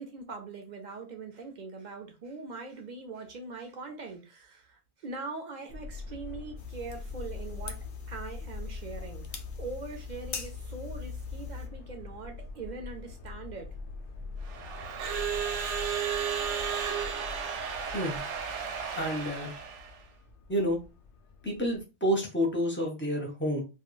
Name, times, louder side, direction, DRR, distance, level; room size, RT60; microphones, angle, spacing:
voice 1, 0.0-13.7, right 3 dB, 55° right, 0.5 m, -42 dB
Subway metro underground, 5.7-21.8, left 4 dB, 85° left, 0.9 m, -44 dB
sound 1, 6.6-11.7, left 6 dB, 60° left, 0.6 m, -41 dB
Crowd / Alarm, 14.4-20.0, right 7 dB, 90° right, 0.9 m, -33 dB
voice 2, 18.9-19.5 20.5-20.8 21.4-23.6, equal, 15° left, 0.5 m, -29 dB
2.3 x 2.2 x 3.0 m
omnidirectional pair, 1.2 m